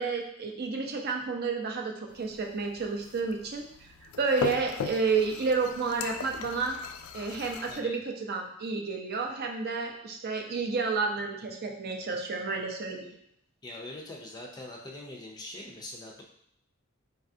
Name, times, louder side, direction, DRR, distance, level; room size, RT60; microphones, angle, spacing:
voice 1, 0.0-3.9 4.2-6.8 7.1-13.1, right 4 dB, 50° right, 2 dB, 0.6 m, -30 dB
sound 1, 2.1-7.8, left 7 dB, 85° left, 0.3 m, -39 dB
voice 2, 7.7-8.0 13.6-16.2, left 1 dB, 20° left, -1 dB, 0.5 m, -43 dB
4.1 x 3.5 x 2.7 m, 0.72 s
head